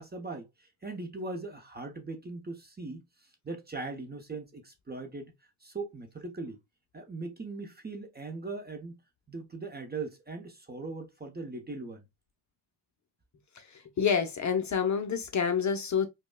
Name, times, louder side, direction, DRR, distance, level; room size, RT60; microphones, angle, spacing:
voice 1, 0.0-5.3 5.6-6.6 6.9-9.0 9.3-12.1, right 3 dB, 20° right, 0.8 m, -40 dB
voice 2, 13.6-16.1, left 6 dB, 35° left, 0.7 m, -28 dB
5.1 x 2.2 x 2.2 m
cardioid pair, 130°, 48 cm